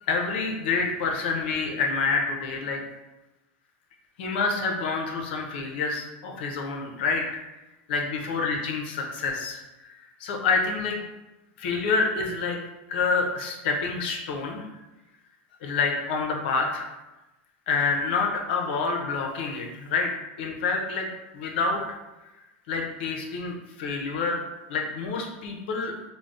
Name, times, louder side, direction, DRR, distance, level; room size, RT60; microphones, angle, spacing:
voice 1, 0.1-2.8 4.2-7.2 7.9-9.6 10.2-11.0 11.6-12.6 12.9-14.7 15.6-16.8 17.7-20.1 20.4-21.1 21.3-21.8 22.7-24.4 24.7-25.9, left 4 dB, 75° left, 2 dB, 0.6 m, -27 dB
3.7 x 2.0 x 2.4 m, 1.0 s
supercardioid pair, 145°, 6 cm